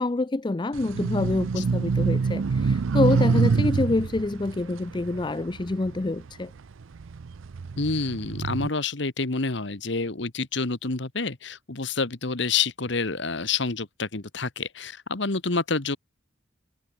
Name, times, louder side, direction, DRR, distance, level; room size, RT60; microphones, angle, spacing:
voice 1, 0.0-6.5, left 2 dB, 25° left, 0.4 m, -26 dB
sound 1, 0.7-6.3 6.8-8.7, right 4 dB, 90° right, 0.5 m, -25 dB
voice 2, 7.8-16.0, left 4 dB, 65° left, 1.5 m, -28 dB
head